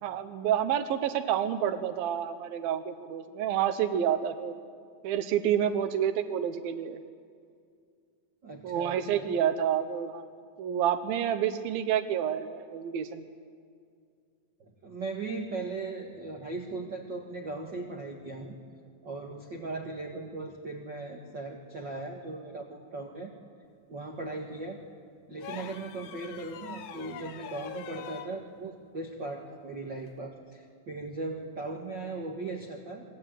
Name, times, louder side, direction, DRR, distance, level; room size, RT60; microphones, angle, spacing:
voice 1, 0.0-4.6 5.0-7.0 8.6-10.3 10.6-13.3, right 9 dB, 90° right, 9 dB, 2.8 m, -29 dB
voice 2, 8.4-9.3 14.8-18.6 19.0-23.3 23.9-24.8 25.3-33.0, right 3 dB, 40° right, 2 dB, 1.8 m, -38 dB
sound 1, 25.4-28.3 30.0-30.2, left 9 dB, 85° left, 3.2 m, -43 dB
27.0 x 23.0 x 9.1 m, 2.2 s
omnidirectional pair, 4.0 m